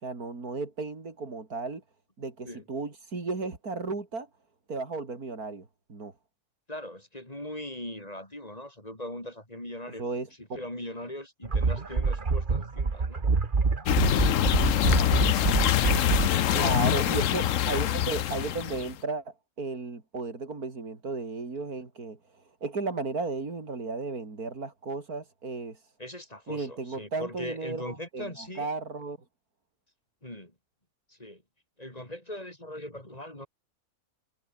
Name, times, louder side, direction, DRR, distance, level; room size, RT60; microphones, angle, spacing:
voice 1, 0.0-1.8 2.2-4.3 4.7-6.1 10.0-10.3 16.5-22.2 22.6-25.8 26.5-29.2, right 3 dB, 90° right, 4.0 m, -34 dB
voice 2, 6.7-10.0 10.4-13.3 15.8-17.3 26.0-28.7 30.2-30.5 31.1-31.4 31.8-33.5, left 1 dB, 25° left, 5.7 m, -40 dB
sound 1, 11.4-16.3, right 4 dB, 35° right, 1.7 m, -26 dB
sound 2, 13.9-18.9, left 11 dB, 65° left, 1.1 m, -25 dB
omnidirectional pair, 1.5 m